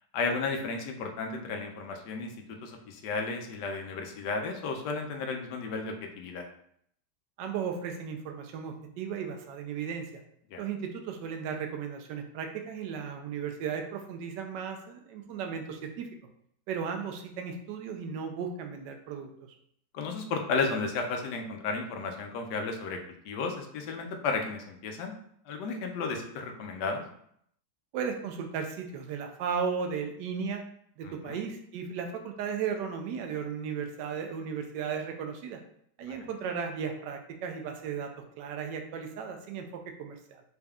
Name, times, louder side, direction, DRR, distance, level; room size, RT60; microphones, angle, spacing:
voice 1, 0.1-6.5 10.5-10.6 19.9-23.0 23.2-25.1 25.5-27.0 31.0-31.4 36.1-36.2, left 4 dB, 75° left, 3 dB, 1.2 m, -33 dB
voice 2, 7.4-10.0 10.6-16.1 16.7-19.3 27.9-30.6 31.0-35.6 36.0-38.1 38.4-40.4, right 6 dB, 80° right, 4 dB, 1.2 m, -35 dB
4.1 x 3.5 x 2.3 m, 0.68 s
omnidirectional pair, 1.9 m